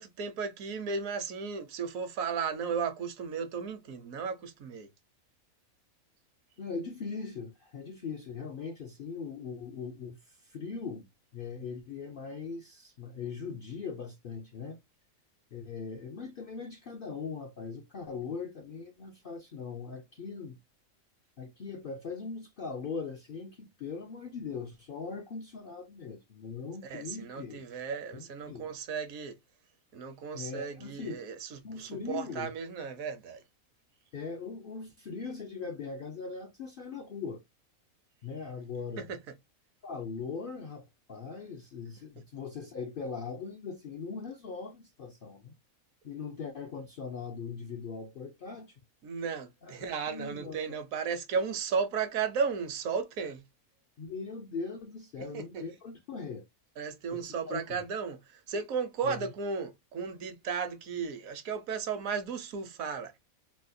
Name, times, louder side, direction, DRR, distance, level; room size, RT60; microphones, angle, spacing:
voice 1, 0.0-4.9 26.8-29.3 29.9-33.4 39.0-39.2 49.0-53.4 55.3-55.6 56.8-63.1, right 6 dB, 75° right, 1.1 m, -35 dB
voice 2, 6.6-11.1 11.3-14.8 15.5-20.6 21.4-27.6 28.1-28.7 30.3-31.2 31.6-32.5 34.1-37.4 38.2-39.1 39.8-40.8 41.1-45.6 46.0-48.8 49.6-49.8 50.1-50.8 54.0-56.5 57.1-57.8 59.0-59.3, left 5 dB, 65° left, 0.5 m, -40 dB
4.0 x 2.2 x 2.6 m
omnidirectional pair, 1.5 m